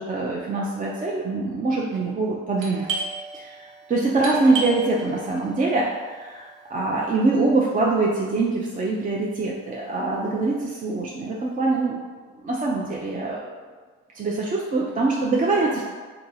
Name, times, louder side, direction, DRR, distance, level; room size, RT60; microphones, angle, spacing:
voice 1, 0.0-2.9 3.3-12.0 12.4-13.5 14.1-15.8, right 3 dB, 25° right, -4 dB, 0.4 m, -24 dB
Doorbell, 2.6-8.0, right 3 dB, 80° right, 0.7 m, -35 dB
2.8 x 2.7 x 3.9 m, 1.5 s
cardioid pair, 90°, 30 cm